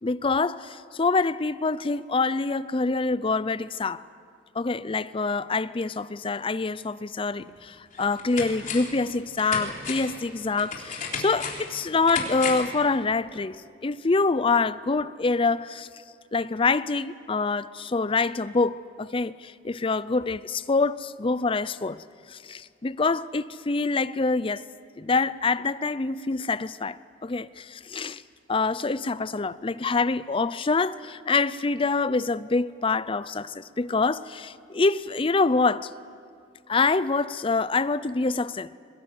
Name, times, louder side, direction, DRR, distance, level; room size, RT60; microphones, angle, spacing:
voice 1, 0.0-4.0 4.5-15.9 16.3-24.6 25.0-28.2 28.5-35.9 36.7-38.8, left 3 dB, 30° left, 0.5 m, -26 dB
sound 1, 7.4-7.5 7.9-9.0 9.4-12.8 13.1-13.2, left 5 dB, 45° left, 3.7 m, -34 dB
23.0 x 20.5 x 9.3 m
head